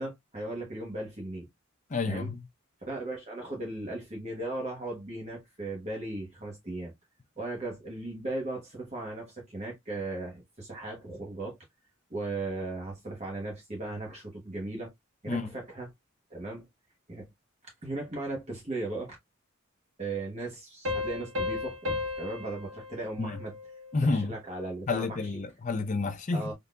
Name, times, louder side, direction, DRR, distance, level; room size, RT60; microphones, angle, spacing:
voice 1, 0.0-1.5 2.0-2.3 2.8-6.9 7.4-11.6 12.1-14.9 15.2-15.9 16.3-16.6 17.1-17.3 17.8-19.2 20.0-23.5 24.0-25.2 26.3-26.5, right 2 dB, 30° right, 1.1 m, -37 dB
voice 2, 1.9-2.5 15.3-15.5 23.2-23.4 23.9-24.3 24.9-26.5, left 3 dB, 35° left, 0.5 m, -30 dB
Piano, 20.9-24.1, left 3 dB, 70° right, 1.5 m, -35 dB
3.6 x 2.8 x 2.3 m
head